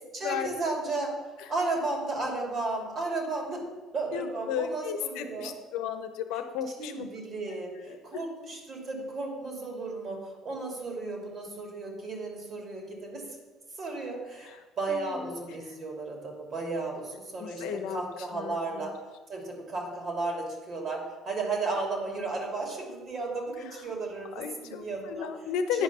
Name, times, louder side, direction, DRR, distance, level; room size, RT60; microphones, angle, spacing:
voice 1, 0.1-1.1 1.5-3.7 3.9-5.5 6.8-13.2 13.8-18.9 19.3-25.3 25.7-25.8, right 3 dB, 50° right, 0 dB, 2.8 m, -34 dB
voice 2, 4.1-7.1 7.9-8.2 14.9-15.4 17.4-18.0 18.3-18.9 24.3-25.8, left 8 dB, 75° left, 8 dB, 0.8 m, -34 dB
9.6 x 5.3 x 5.7 m, 1.3 s
supercardioid pair, 70°, 0 cm